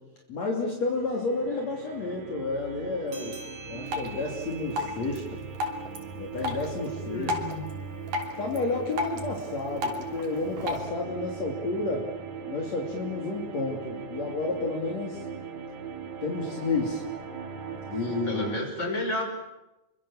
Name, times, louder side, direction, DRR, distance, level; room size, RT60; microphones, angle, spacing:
voice 1, 0.3-3.4 3.7-5.4 6.2-7.4 8.4-12.1 12.5-15.2 16.2-17.0 17.9-18.5, left 3 dB, 55° left, 0 dB, 4.0 m, -31 dB
sound 1, 0.7-18.6, right 6 dB, 65° right, 3.5 m, -39 dB
sound 2, 3.1-8.0, right 4 dB, 35° right, 4.2 m, -48 dB
Drip, 3.9-10.9, left 2 dB, 85° right, 4.8 m, -35 dB
voice 2, 7.0-7.6 18.0-19.2, left 1 dB, 20° left, 2 dB, 6.2 m, -32 dB
29.5 x 24.5 x 7.2 m, 1.0 s
omnidirectional pair, 3.7 m